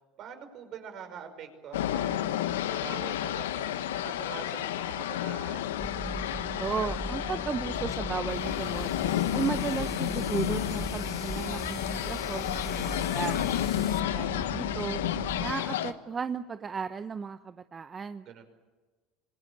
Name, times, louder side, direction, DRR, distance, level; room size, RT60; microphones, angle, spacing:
voice 1, 0.2-5.7 18.3-18.4, right 7 dB, 55° right, 7 dB, 5.3 m, -45 dB
sound 1, 1.7-15.9, left 12 dB, 90° left, 1.1 m, -31 dB
sound 2, 5.8-15.5, right 1 dB, 10° right, 1.3 m, -39 dB
voice 2, 6.6-8.9 9.3-13.4 14.1-15.0 15.4-18.3, right 5 dB, 30° right, 11 dB, 0.9 m, -35 dB
sound 3, 8.3-14.0, left 7 dB, 40° left, 2.0 m, -45 dB
26.0 x 20.5 x 8.8 m, 1.3 s
hypercardioid pair, 90°, 0 cm